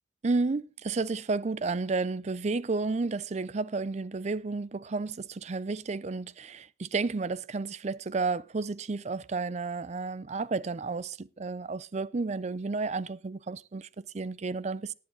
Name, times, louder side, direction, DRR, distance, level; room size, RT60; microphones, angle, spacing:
voice 1, 0.2-14.9, right 3 dB, 40° right, 0.5 m, -32 dB
18.5 x 7.5 x 4.0 m
head